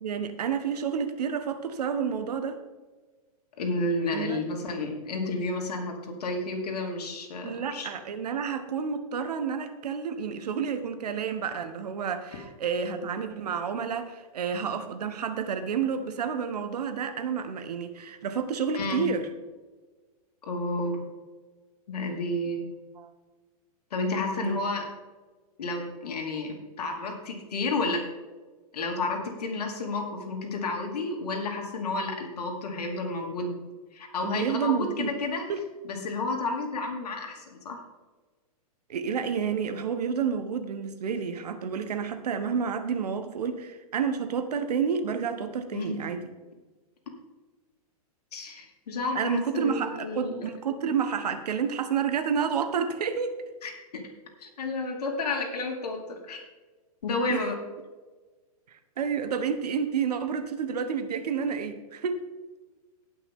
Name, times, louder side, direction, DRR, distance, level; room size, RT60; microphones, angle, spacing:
voice 1, 0.0-2.6 4.1-4.4 7.4-19.3 23.0-23.1 24.4-24.6 34.2-35.1 35.5-35.6 38.9-46.3 49.1-53.3 57.3-57.5 58.7-62.2, right 6 dB, 80° right, 9 dB, 1.4 m, -30 dB
voice 2, 3.6-7.9 12.3-12.4 12.8-13.1 18.7-19.1 20.4-21.0 21.9-22.6 23.9-24.8 25.6-28.0 28.7-33.6 33.9-35.4 35.9-37.8 45.7-45.9 48.3-50.4 53.6-53.7 54.4-56.4 57.0-57.5, left 2 dB, 80° left, 1 dB, 2.9 m, -31 dB
18.0 x 6.1 x 3.8 m, 1.3 s
hypercardioid pair, 155°, 20 cm